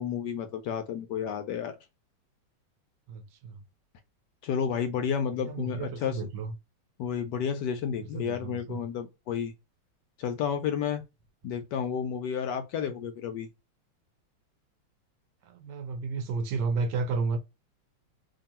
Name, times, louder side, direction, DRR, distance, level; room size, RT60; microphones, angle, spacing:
voice 1, 0.0-1.8 4.4-6.2 7.0-9.5 10.2-11.0 11.4-13.5, left 7 dB, 70° left, 1.1 m, -31 dB
voice 2, 3.1-3.6 5.4-6.5 8.0-8.8 15.4-17.4, right 4 dB, 75° right, 1.1 m, -32 dB
2.9 x 2.7 x 4.1 m
omnidirectional pair, 2.1 m